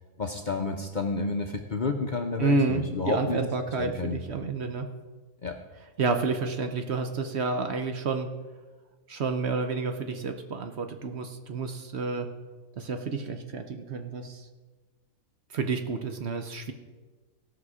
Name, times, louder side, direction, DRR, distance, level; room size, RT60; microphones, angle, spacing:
voice 1, 0.2-3.4 3.8-4.2 5.4-5.6, left 3 dB, 45° left, 4 dB, 0.7 m, -30 dB
voice 2, 2.4-4.9 6.0-8.3 9.1-12.3 12.8-14.5 15.5-16.7, right 4 dB, 55° right, 6 dB, 1.0 m, -30 dB
17.5 x 6.0 x 4.9 m, 1.3 s
omnidirectional pair, 1.4 m